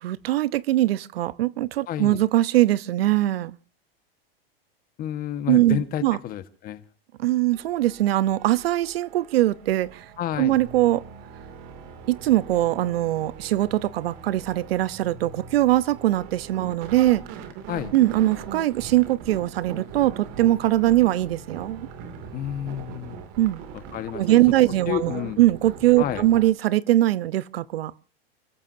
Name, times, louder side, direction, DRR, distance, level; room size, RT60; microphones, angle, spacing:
voice 1, 0.0-3.6 5.5-6.2 7.2-10.0 10.4-11.0 12.1-17.2 17.9-21.9 23.4-23.6 24.1-27.9, right 15 dB, 75° right, 0.9 m, -21 dB
voice 2, 1.9-2.2 5.0-6.8 10.2-10.6 17.7-17.9 22.3-23.2 23.9-24.4 24.9-25.4 26.0-26.3, left 11 dB, 30° left, 1.5 m, -30 dB
sound 1, 7.5-26.5, right 6 dB, 45° right, 2.6 m, -41 dB
30.0 x 14.0 x 2.8 m
supercardioid pair, 140°, 30 cm